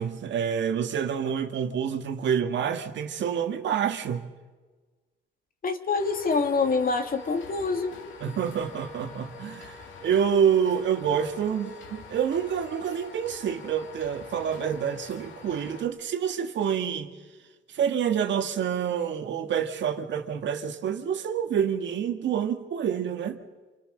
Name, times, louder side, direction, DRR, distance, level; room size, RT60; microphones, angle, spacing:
voice 1, 0.0-4.3 8.2-17.1 17.7-23.4, right 8 dB, 65° right, 1.9 m, -27 dB
voice 2, 5.6-7.9, left 4 dB, 45° left, 2.6 m, -26 dB
sound 1, 6.0-15.9, left 4 dB, 75° left, 3.2 m, -45 dB
27.5 x 25.0 x 6.6 m
cardioid pair, 90°, 20 cm